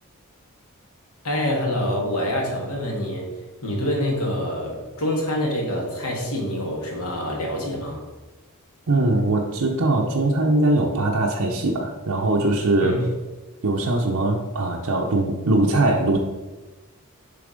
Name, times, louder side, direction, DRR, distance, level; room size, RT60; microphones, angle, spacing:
voice 1, 1.2-3.3 3.6-8.0 12.8-13.0, left 1 dB, 80° left, -1 dB, 1.8 m, -26 dB
voice 2, 8.9-12.9 13.6-16.2, right 2 dB, 75° right, -1 dB, 0.7 m, -21 dB
6.9 x 3.5 x 5.1 m, 1.2 s
head